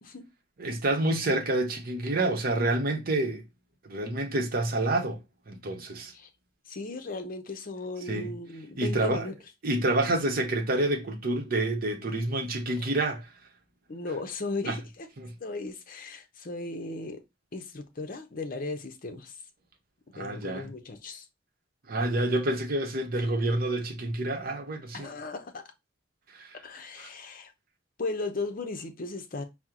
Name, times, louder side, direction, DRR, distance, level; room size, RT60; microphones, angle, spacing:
voice 1, 0.6-3.4 3.8-6.1 8.1-8.3 8.8-9.3 9.6-13.3 14.7-14.8 15.2-15.3 20.1-20.7 21.9-25.1 26.3-26.6 27.0-27.1, right 2 dB, 50° right, 0.8 m, -28 dB
voice 2, 6.7-9.3 12.8-12.9 13.9-15.1 15.4-17.2 17.5-19.4 20.1-21.3 24.9-25.6 26.6-27.5 28.0-29.4, left 3 dB, 45° left, 0.6 m, -36 dB
4.4 x 2.1 x 3.6 m
head